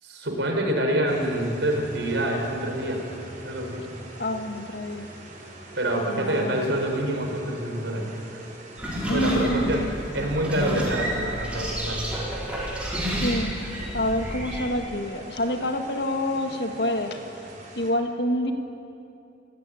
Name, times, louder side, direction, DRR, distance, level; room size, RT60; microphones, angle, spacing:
voice 1, 0.0-3.1 3.4-3.9 5.7-8.4 9.1-9.8 10.1-12.2, right 1 dB, 75° right, 2 dB, 4.9 m, -26 dB
sound 1, 1.1-17.9, right 1 dB, 40° right, 5.4 m, -44 dB
voice 2, 4.2-5.1 6.1-6.8 9.1-9.9 13.0-17.2 17.8-18.5, left 1 dB, 60° left, 5 dB, 1.9 m, -27 dB
sound 2, 8.8-14.7, equal, 5° right, 4.9 m, -30 dB
28.0 x 16.5 x 9.2 m, 2.7 s
head